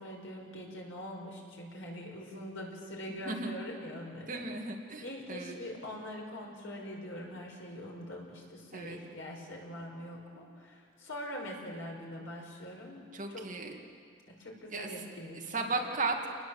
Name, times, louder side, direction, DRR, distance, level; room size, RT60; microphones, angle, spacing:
voice 1, 0.0-4.4 5.0-13.4 14.3-15.7, left 1 dB, 75° left, 0 dB, 5.4 m, -43 dB
voice 2, 4.3-5.6 8.7-9.0 13.1-13.8 14.7-14.9 15.5-16.3, right 3 dB, 40° right, 1 dB, 2.4 m, -35 dB
29.0 x 20.0 x 7.8 m, 2.2 s
head